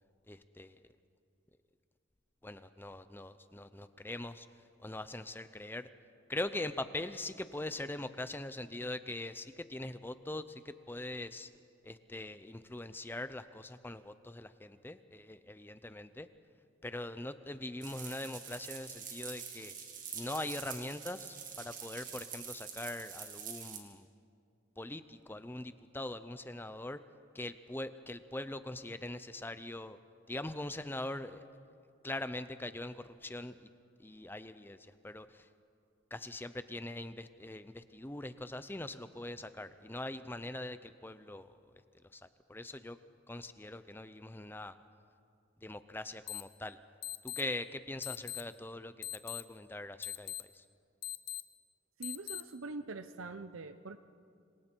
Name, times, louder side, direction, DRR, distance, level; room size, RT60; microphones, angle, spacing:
voice 1, 0.3-0.8 2.4-4.5 4.8-5.9 6.3-11.5 11.8-16.3 16.8-19.7 20.1-24.1 24.8-27.0 27.3-30.0 30.3-31.4 32.0-33.7 34.0-35.5 36.1-41.8 42.1-43.0 43.3-44.8 45.6-46.8 47.2-48.9 49.2-50.6, left 1 dB, 10° left, 12 dB, 0.5 m, -42 dB
sound 1, 17.8-23.8, right 7 dB, 40° right, 2.3 m, -45 dB
sound 2, 46.3-46.4 47.0-47.4 48.0-48.4 49.0-49.4 50.0-50.4 51.0-51.4 52.0-52.4, left 11 dB, 50° left, 0.8 m, -40 dB
voice 2, 52.0-54.0, right 3 dB, 80° right, 10 dB, 0.7 m, -43 dB
26.5 x 26.5 x 4.5 m, 2.4 s
head